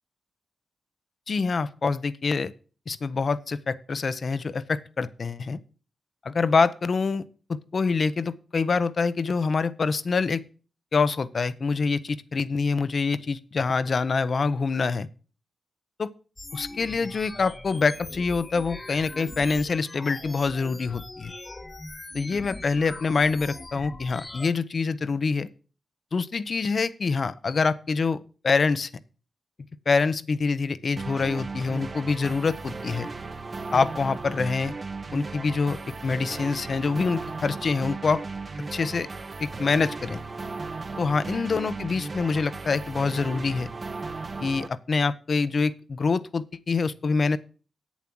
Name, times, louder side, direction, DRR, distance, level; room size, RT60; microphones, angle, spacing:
voice 1, 1.3-2.5 2.9-5.6 6.2-7.2 7.5-10.4 10.9-15.1 16.0-16.1 16.5-21.3 22.1-25.5 26.1-28.9 29.9-33.1 33.7-34.7 35.1-38.2 38.7-39.1 39.4-40.2 41.0-43.7 44.4-47.4, left 4 dB, 55° left, 16 dB, 0.7 m, -25 dB
sound 1, 16.4-24.5, left 2 dB, 30° left, 1.1 m, -41 dB
sound 2, 31.0-44.7, right 3 dB, 45° right, 0.8 m, -36 dB
8.3 x 7.2 x 6.1 m, 0.38 s
cardioid pair, 55°, 0 cm